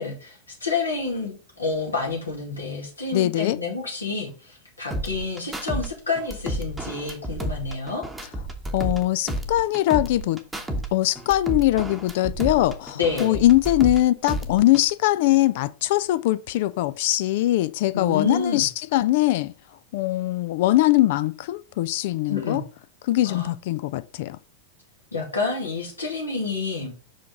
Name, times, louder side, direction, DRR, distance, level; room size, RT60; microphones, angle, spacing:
voice 1, 0.0-8.0 12.9-13.4 17.9-18.7 22.3-22.6 23.2-23.5 25.1-26.9, left 4 dB, 80° left, 2.2 m, -29 dB
voice 2, 3.1-3.6 8.7-10.4 10.9-19.5 19.9-22.6 23.0-24.4, left 15 dB, 50° left, 0.3 m, -22 dB
sound 1, 4.9-5.9 6.2-9.0 9.3-10.9 11.2-14.0 14.3-14.9, right 1 dB, 10° right, 1.0 m, -31 dB
5.8 x 5.0 x 3.7 m
figure-of-eight pair, 90°, 0 cm